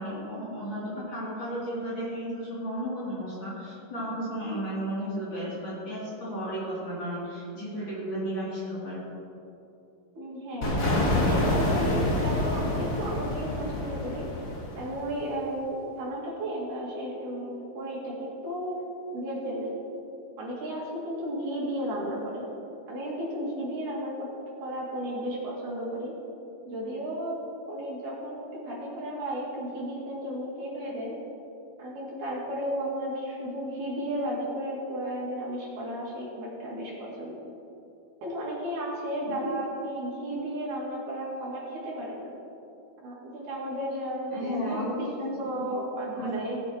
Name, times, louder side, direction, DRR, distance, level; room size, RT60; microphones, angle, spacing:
voice 1, 0.0-9.0 39.3-39.5 44.3-45.6 46.1-46.4, equal, 35° left, -9 dB, 3.4 m, -34 dB
voice 2, 10.1-14.2 14.8-18.7 19.1-19.8 20.4-22.5 22.9-24.3 24.6-26.1 26.7-27.4 27.7-31.1 31.8-37.4 38.2-42.3 43.0-45.1 45.4-46.6, equal, 70° right, -6 dB, 4.0 m, -34 dB
sound 1, 10.6-15.3, left 1 dB, 90° left, 0.7 m, -27 dB
19.0 x 7.7 x 3.0 m, 2.7 s
omnidirectional pair, 3.9 m